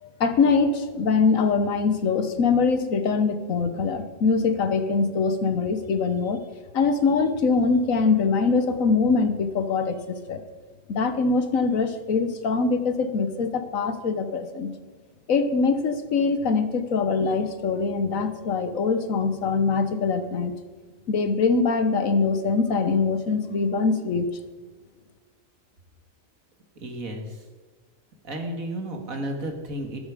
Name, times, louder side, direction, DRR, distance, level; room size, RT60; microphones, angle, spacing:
voice 1, 0.0-6.4 6.7-10.0 10.3-10.4 10.9-14.7 15.3-20.5 21.1-24.3, left 4 dB, 75° left, 10 dB, 1.5 m, -23 dB
voice 2, 26.8-27.4 28.2-30.0, right 1 dB, 85° right, 4 dB, 2.5 m, -32 dB
13.5 x 13.5 x 5.0 m, 1.4 s
omnidirectional pair, 1.4 m